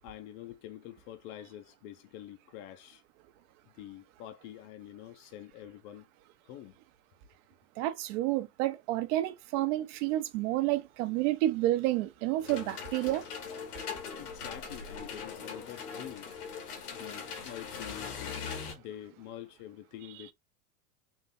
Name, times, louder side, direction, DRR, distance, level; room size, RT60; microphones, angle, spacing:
voice 1, 0.0-3.0 3.8-6.1 6.4-6.8 14.2-16.3 16.9-20.3, left 12 dB, 40° left, 0.6 m, -46 dB
voice 2, 7.8-13.3, right 15 dB, 50° right, 0.8 m, -30 dB
sound 1, 12.4-18.7, left 6 dB, 85° left, 1.6 m, -41 dB
3.8 x 2.6 x 4.1 m
supercardioid pair, 125°, 45 cm